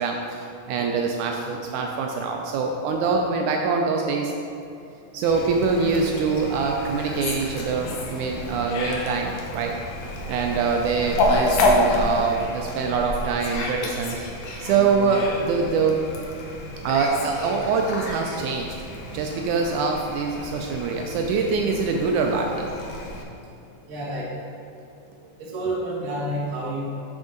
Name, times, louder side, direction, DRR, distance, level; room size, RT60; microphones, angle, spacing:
voice 1, 0.0-4.3 5.1-9.8 10.3-16.0 16.8-18.8 19.1-22.6, right 5 dB, 80° right, 2 dB, 1.8 m, -24 dB
Fowl, 5.2-23.2, left 2 dB, 75° left, 2.2 m, -29 dB
voice 2, 23.9-24.5 25.4-26.8, right 1 dB, 50° right, -5 dB, 1.0 m, -29 dB
7.3 x 6.0 x 3.8 m, 2.7 s
omnidirectional pair, 3.8 m